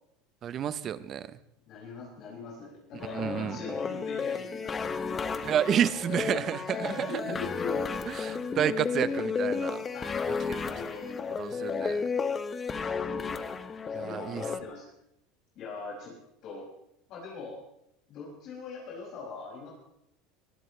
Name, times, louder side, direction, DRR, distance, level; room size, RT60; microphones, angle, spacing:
voice 1, 0.4-1.3 3.2-3.6 5.4-7.2 8.1-9.8 10.5-10.7 11.4-12.1 13.9-14.4, right 9 dB, 35° right, 15 dB, 0.8 m, -30 dB
voice 2, 1.7-5.4 6.1-7.9 8.3-8.5 9.6-10.2 10.7-11.8 12.7-13.0 13.9-14.9 15.5-16.1 16.4-16.6 17.1-17.6 18.1-19.7, left 4 dB, 50° left, -5 dB, 6.5 m, -42 dB
sound 1, 3.0-14.6, left 5 dB, 20° left, 1.1 m, -33 dB
23.0 x 16.0 x 3.3 m, 0.79 s
supercardioid pair, 130°, 0 cm